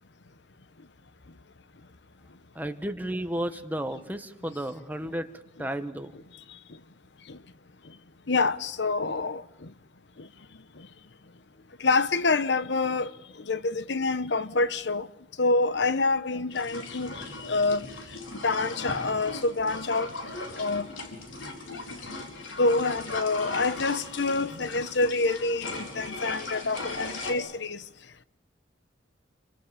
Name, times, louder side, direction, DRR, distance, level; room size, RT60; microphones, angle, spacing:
voice 1, 2.5-5.3 5.6-6.1, right 1 dB, 10° right, 1.5 m, -33 dB
voice 2, 8.3-9.4 11.8-13.1 13.5-15.1 15.4-17.1 17.4-17.9 18.4-20.1 20.6-20.9 22.6-27.8, left 3 dB, 65° left, 0.9 m, -26 dB
sound 1, 16.5-27.3, left 2 dB, 85° left, 4.8 m, -38 dB
29.0 x 24.5 x 7.2 m
head